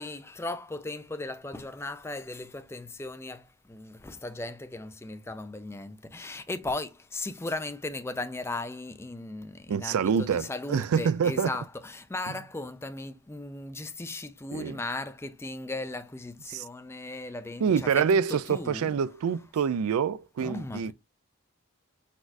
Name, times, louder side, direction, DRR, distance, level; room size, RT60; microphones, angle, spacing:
voice 1, 0.0-18.9 19.3-19.7 20.4-20.9, left 2 dB, 10° left, 0.4 m, -37 dB
voice 2, 9.7-11.5 14.5-14.8 16.5-16.6 17.6-20.9, right 6 dB, 85° right, 0.4 m, -26 dB
4.5 x 4.2 x 2.5 m
head